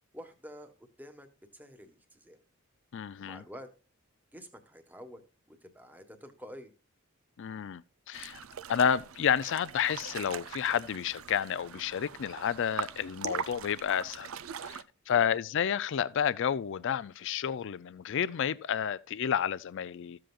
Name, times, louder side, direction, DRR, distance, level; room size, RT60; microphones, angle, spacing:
voice 1, 0.1-1.3 1.5-2.4 3.2-3.7 4.3-5.2 5.5-6.7 15.1-15.3, equal, 10° right, 1.3 m, -48 dB
voice 2, 2.9-3.4 7.4-8.4 8.7-14.3 14.6-20.2, left 8 dB, 60° left, 0.4 m, -30 dB
sound 1, 8.1-14.8, right 8 dB, 75° right, 0.6 m, -41 dB
14.0 x 7.7 x 2.4 m
head